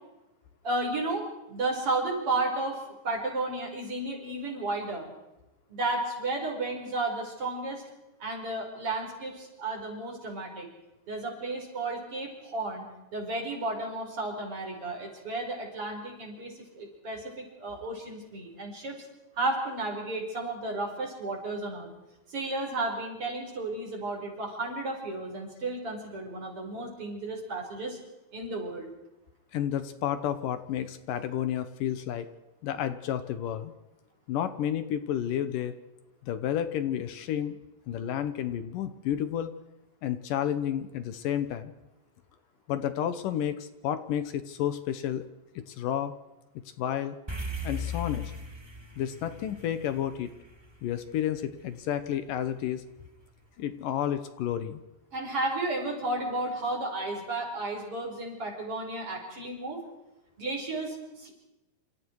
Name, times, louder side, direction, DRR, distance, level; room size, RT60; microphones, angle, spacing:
voice 1, 0.6-5.1 5.7-7.8 8.2-10.7 11.1-12.9 13.1-19.0 19.3-21.9 22.3-28.0 28.3-28.9 55.1-59.8 60.4-61.3, right 2 dB, 40° right, 1 dB, 6.0 m, -33 dB
voice 2, 29.5-32.3 32.6-33.7 34.3-35.7 36.2-37.6 37.9-39.5 40.0-41.7 42.7-45.2 45.6-46.1 46.8-47.2 47.6-48.3 49.0-50.3 50.8-52.8 53.6-54.8, left 10 dB, 75° left, 11 dB, 2.7 m, -31 dB
sound 1, 47.3-51.8, left 2 dB, 10° right, 1.4 m, -38 dB
28.0 x 27.5 x 4.8 m, 0.99 s
omnidirectional pair, 4.0 m